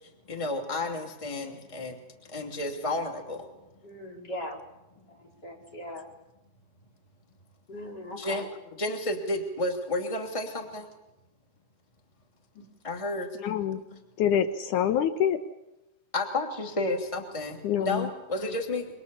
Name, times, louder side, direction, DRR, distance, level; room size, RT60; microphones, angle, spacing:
voice 1, 0.3-2.0 2.3-3.5 8.1-8.5 8.8-10.9 12.8-13.3 13.9-14.0 16.1-18.9, left 2 dB, 10° left, 3 dB, 2.5 m, -31 dB
voice 2, 3.8-4.6 5.1-6.1 7.7-8.5 12.5-12.7, left 1 dB, 30° left, 0 dB, 4.9 m, -40 dB
voice 3, 13.4-13.8 14.2-15.4 17.6-18.1, left 9 dB, 80° left, 9 dB, 2.5 m, -26 dB
27.0 x 24.5 x 7.0 m, 0.94 s
omnidirectional pair, 3.5 m